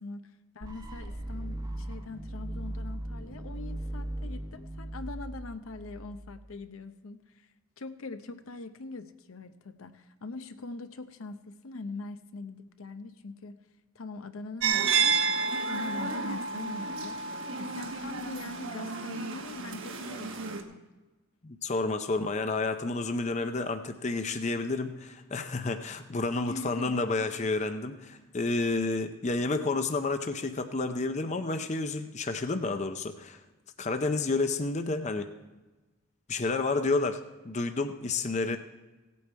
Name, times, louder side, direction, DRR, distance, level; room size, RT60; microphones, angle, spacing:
voice 1, 0.0-7.5 7.8-13.6 13.9-20.8 26.4-27.0 38.4-38.6, left 3 dB, 80° left, 10 dB, 0.7 m, -42 dB
sound 1, 0.6-6.5, right 1 dB, 20° right, 1.0 m, -38 dB
sound 2, 14.6-20.6, right 5 dB, 65° right, 1.1 m, -30 dB
voice 2, 21.4-33.4 33.8-35.3 36.3-37.2 37.4-38.6, left 3 dB, 35° left, 8 dB, 0.6 m, -30 dB
17.0 x 8.5 x 4.5 m, 1.2 s
head